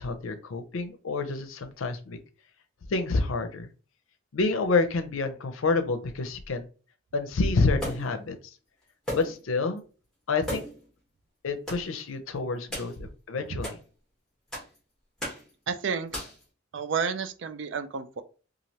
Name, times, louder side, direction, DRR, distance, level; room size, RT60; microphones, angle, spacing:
voice 1, 0.0-2.2 2.9-3.7 4.3-6.7 7.1-8.4 9.1-9.8 10.3-10.6 11.4-13.8, left 3 dB, 85° left, 0.5 m, -28 dB
sound 1, 7.8-8.2 9.1-9.5 9.8-9.9 10.4-10.9 11.7-11.9 12.7-13.0 13.6-13.8 14.5-14.8 15.2-15.5 16.1-16.4, equal, 5° left, 1.2 m, -35 dB
voice 2, 15.7-16.2 16.7-18.2, right 6 dB, 65° right, 0.3 m, -31 dB
3.1 x 2.4 x 2.8 m
head